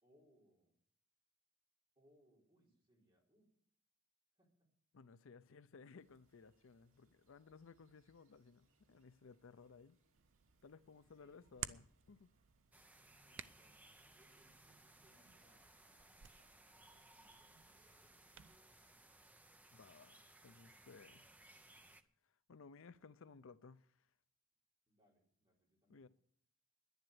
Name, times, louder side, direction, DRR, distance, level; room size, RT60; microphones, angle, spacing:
voice 1, 0.0-0.7 2.0-3.5 4.4-4.7 11.2-11.7 13.1-16.1 16.7-19.3 24.9-26.1, equal, 25° right, 4.3 m, -75 dB
voice 2, 4.9-10.0 10.6-12.3 19.7-21.2 22.2-24.1 25.9-26.1, left 5 dB, 65° left, 0.5 m, -60 dB
sound 1, 6.0-19.3, right 2 dB, 80° right, 2.3 m, -80 dB
Hands, 10.1-18.6, right 10 dB, 60° right, 0.6 m, -56 dB
sound 2, 12.7-22.0, right 2 dB, 5° right, 0.6 m, -64 dB
10.5 x 10.5 x 7.9 m
head